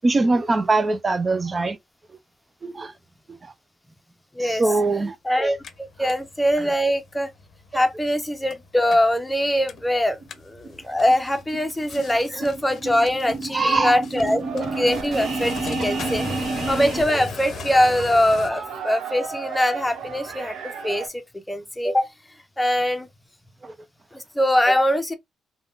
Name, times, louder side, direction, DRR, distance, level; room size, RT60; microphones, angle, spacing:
voice 1, 0.0-1.8 2.6-2.9 3.3-3.5 4.4-5.2 12.3-12.5 13.5-14.0 23.6-23.7, right 3 dB, 30° right, 0.4 m, -22 dB
voice 2, 5.2-7.3 7.7-10.2 10.4-16.4 16.7-21.2 21.5-22.1 22.6-23.1 24.1-25.1, left 1 dB, 10° left, 0.7 m, -22 dB
sound 1, 5.4-18.5, left 5 dB, 55° left, 0.6 m, -41 dB
sound 2, 9.8-9.9 10.2-10.3 10.6-10.8 11.1-17.0, right 3 dB, 50° right, 1.2 m, -31 dB
sound 3, 14.4-21.1, right 5 dB, 70° right, 1.0 m, -36 dB
3.5 x 2.2 x 2.4 m
cardioid pair, 90°, 0 cm